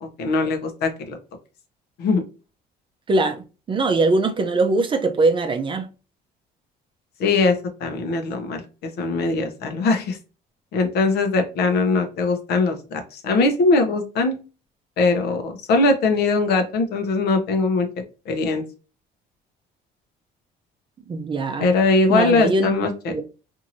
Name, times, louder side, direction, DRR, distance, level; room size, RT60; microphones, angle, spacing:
voice 1, 0.0-1.2 2.0-2.2 7.2-10.2 10.7-14.4 15.0-17.9 18.3-18.6 21.6-23.3, left 3 dB, 70° left, 0.8 m, -21 dB
voice 2, 3.1-5.9 21.1-21.7 22.1-22.7 23.1-23.2, right 3 dB, 30° right, 0.5 m, -21 dB
2.9 x 2.6 x 2.6 m
cardioid pair, 110°, 17 cm